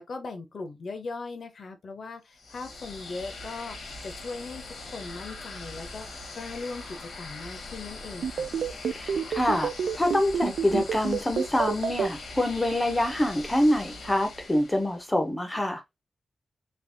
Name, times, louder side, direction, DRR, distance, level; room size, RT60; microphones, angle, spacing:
voice 1, 0.0-3.8 4.0-6.1 6.3-8.6, left 3 dB, 45° left, 0.7 m, -39 dB
sound 1, 2.3-15.1, left 2 dB, 75° left, 1.2 m, -42 dB
sound 2, 8.2-12.1, right 7 dB, 80° right, 0.4 m, -27 dB
voice 2, 8.9-9.7 10.0-15.8, left 1 dB, 10° left, 0.6 m, -26 dB
3.4 x 2.9 x 2.7 m
wide cardioid pair, 180°, 0 cm